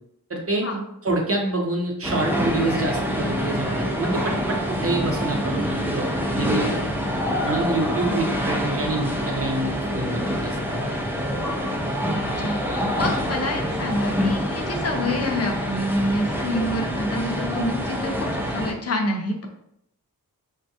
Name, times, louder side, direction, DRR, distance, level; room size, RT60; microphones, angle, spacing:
voice 1, 0.3-0.7 1.0-6.8 7.4-10.9, right 2 dB, 40° right, 1 dB, 0.7 m, -27 dB
sound 1, 2.0-18.7, equal, 5° right, 0.4 m, -26 dB
voice 2, 8.1-8.5 12.4-19.5, left 1 dB, 40° left, 2 dB, 0.6 m, -27 dB
3.5 x 2.2 x 2.7 m, 0.75 s
wide cardioid pair, 100°, 37 cm